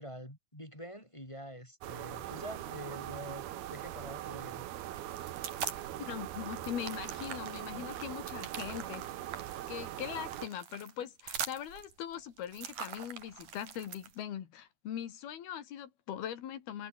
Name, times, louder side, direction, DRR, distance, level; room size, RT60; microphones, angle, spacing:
voice 1, 0.0-3.4 3.7-4.7, equal, 5° left, 6.3 m, -46 dB
sound 1, 1.8-10.5, right 13 dB, 80° right, 3.3 m, -41 dB
sound 2, 4.9-6.0 6.3-14.2, right 8 dB, 55° right, 3.9 m, -43 dB
voice 2, 6.0-9.1 9.7-16.9, left 10 dB, 85° left, 4.2 m, -41 dB
omnidirectional pair, 4.3 m